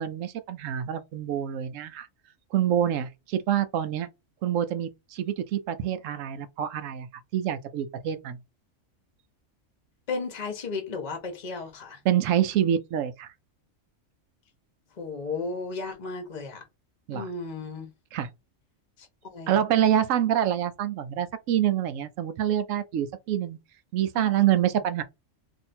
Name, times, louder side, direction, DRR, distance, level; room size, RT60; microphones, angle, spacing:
voice 1, 0.0-2.1 2.5-4.1 4.4-7.1 7.3-8.4 12.0-13.3 17.1-17.3 18.1-18.3 19.5-23.6 23.9-25.0, right 10 dB, 90° right, 1.0 m, -26 dB
voice 2, 10.1-12.0 15.0-16.6 17.1-17.9 19.0-19.6 24.2-24.3, left 4 dB, 35° left, 0.9 m, -34 dB
2.7 x 2.5 x 4.2 m
omnidirectional pair, 1.3 m